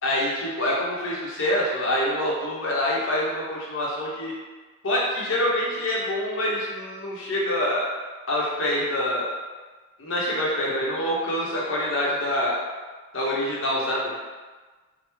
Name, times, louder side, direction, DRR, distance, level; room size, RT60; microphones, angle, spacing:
voice 1, 0.0-4.3 4.8-7.9 8.3-9.3 10.0-12.6 13.1-14.1, left 1 dB, 70° left, -4 dB, 0.7 m, -26 dB
3.3 x 2.0 x 3.0 m, 1.3 s
head